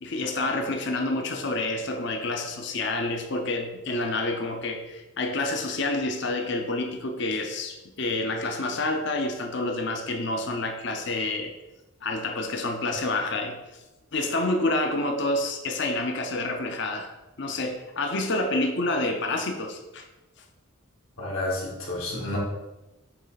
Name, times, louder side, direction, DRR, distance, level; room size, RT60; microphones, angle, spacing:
voice 1, 0.0-11.5 12.0-13.6 14.1-17.1 17.4-20.1, left 2 dB, 55° left, 5 dB, 0.6 m, -28 dB
voice 2, 21.2-22.4, left 2 dB, 75° left, -3 dB, 2.0 m, -30 dB
7.7 x 3.2 x 3.9 m, 1.0 s
head